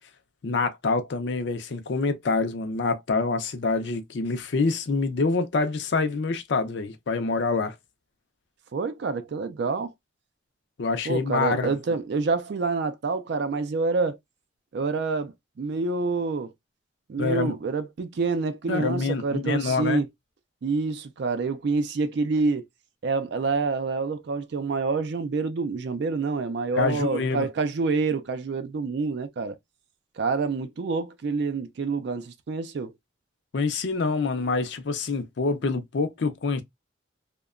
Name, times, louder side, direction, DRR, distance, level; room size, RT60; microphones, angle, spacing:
voice 1, 0.4-7.7 10.8-11.7 17.2-17.6 18.7-20.0 26.8-27.5 33.5-36.6, left 4 dB, 60° left, 0.5 m, -26 dB
voice 2, 8.7-9.9 11.1-14.2 14.7-15.3 15.6-16.5 17.1-20.1 20.6-22.6 23.0-29.5 30.2-32.9, right 4 dB, 55° right, 0.4 m, -27 dB
2.8 x 2.1 x 2.3 m
head